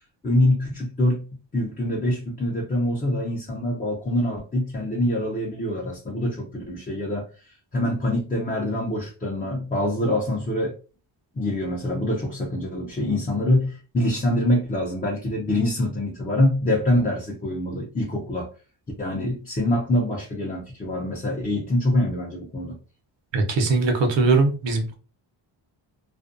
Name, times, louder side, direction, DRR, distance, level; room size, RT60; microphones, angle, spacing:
voice 1, 0.2-1.2 1.5-10.7 11.3-18.5 19.0-22.8, left 1 dB, 20° left, 0.5 m, -25 dB
voice 2, 23.3-24.9, right 3 dB, 70° right, 0.8 m, -20 dB
2.4 x 2.2 x 2.5 m
cardioid pair, 115°, 46 cm